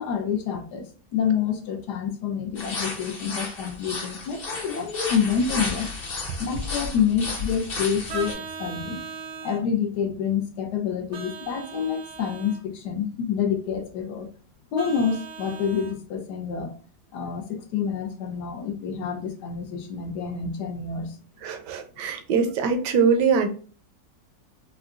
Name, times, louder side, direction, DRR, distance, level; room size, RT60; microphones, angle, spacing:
voice 1, 0.0-5.9 6.4-9.0 9.4-14.3 14.7-16.7 17.1-21.2, left 7 dB, 75° left, 5 dB, 1.2 m, -27 dB
sound 1, 2.5-8.3, left 3 dB, 40° left, 0.9 m, -33 dB
Vehicle horn car horn honking, 8.1-9.6 11.1-12.6 14.8-16.0, right 5 dB, 60° right, 0.8 m, -38 dB
voice 2, 21.4-23.5, right 5 dB, 75° right, 6 dB, 1.2 m, -22 dB
4.7 x 2.2 x 2.4 m, 0.40 s
omnidirectional pair, 1.9 m